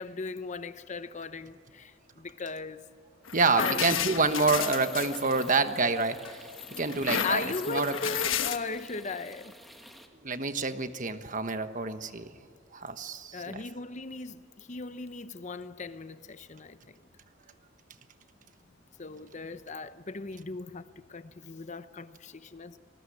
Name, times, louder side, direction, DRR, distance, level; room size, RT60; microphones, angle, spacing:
voice 1, 0.0-2.8 3.6-4.1 7.2-9.5 13.3-17.0 19.0-22.8, left 3 dB, 35° left, 0.8 m, -38 dB
sound 1, 3.3-5.8 6.2-8.6, left 8 dB, 80° left, 1.2 m, -32 dB
voice 2, 3.3-6.4 6.8-8.0 10.2-12.3 12.7-13.6, right 3 dB, 40° right, 1.2 m, -28 dB
sound 2, 4.1-10.1, equal, ahead, 1.9 m, -51 dB
28.0 x 19.5 x 9.8 m
head